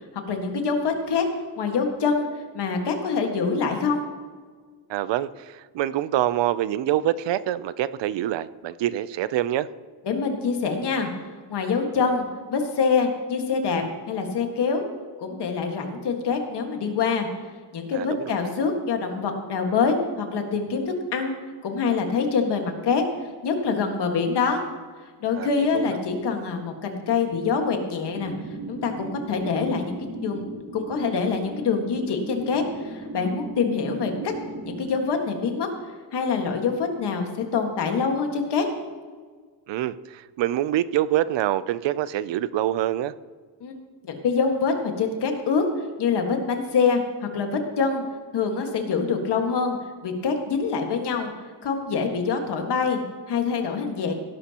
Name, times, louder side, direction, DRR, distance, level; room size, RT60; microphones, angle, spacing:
voice 1, 0.3-1.3 1.6-2.3 2.5-4.0 10.1-11.1 11.5-14.9 15.2-17.3 17.7-21.4 21.6-23.0 23.4-24.6 25.2-28.3 28.7-29.9 30.2-30.4 30.7-34.3 34.7-35.7 36.1-38.7 43.6-43.7 44.0-45.6 46.0-48.0 48.3-49.8 50.0-51.3 51.6-53.0 53.3-54.1, left 5 dB, 65° left, 4 dB, 1.7 m, -25 dB
voice 2, 4.9-9.7 17.9-18.4 25.4-25.5 25.7-26.0 39.7-43.1, right 12 dB, 75° right, 16 dB, 0.6 m, -25 dB
sound 1, 28.1-34.9, right 2 dB, 50° right, 4.3 m, -37 dB
17.0 x 11.5 x 2.9 m, 1.5 s
wide cardioid pair, 180°, 43 cm